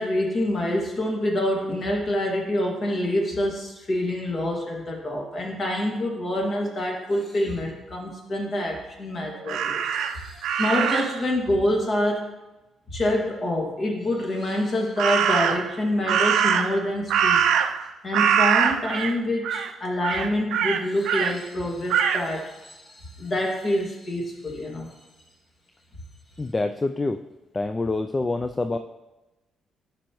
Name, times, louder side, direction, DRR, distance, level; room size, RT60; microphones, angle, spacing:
voice 1, 0.0-12.2 12.9-17.4 18.0-24.9, left 1 dB, 45° left, 0 dB, 2.1 m, -26 dB
Crow, 9.5-11.2 15.0-15.7 16.1-17.9 18.1-19.1 19.4-19.7 20.0-21.3 21.9-22.2, right 8 dB, 80° right, 0.4 m, -23 dB
voice 2, 26.4-27.2 27.5-28.8, left 3 dB, 20° left, 7 dB, 0.3 m, -26 dB
11.5 x 5.3 x 3.1 m, 1.0 s
cardioid pair, 90°, 0 cm